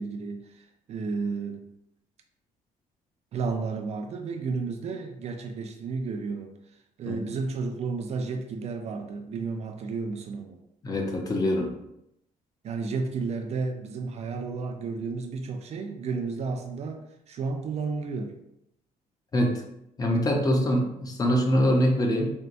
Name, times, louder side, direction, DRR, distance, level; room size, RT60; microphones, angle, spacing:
voice 1, 0.0-1.6 3.3-6.5 7.0-10.6 12.6-17.0 17.3-18.4, right 4 dB, 50° right, 4 dB, 0.4 m, -32 dB
voice 2, 10.8-11.7 19.3-19.6 20.0-22.3, equal, 25° left, 1 dB, 0.6 m, -24 dB
4.3 x 2.1 x 2.6 m, 0.81 s
cardioid pair, 130°, 14 cm